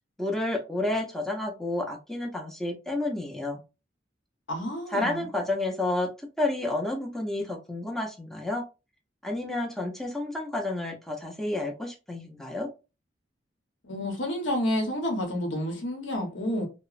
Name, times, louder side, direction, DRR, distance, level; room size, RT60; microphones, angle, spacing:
voice 1, 0.2-3.6 4.9-8.6 9.2-12.7, left 2 dB, ahead, 0.5 m, -30 dB
voice 2, 4.5-5.3 13.8-16.7, left 1 dB, 75° left, 0.9 m, -29 dB
2.9 x 2.0 x 2.4 m
head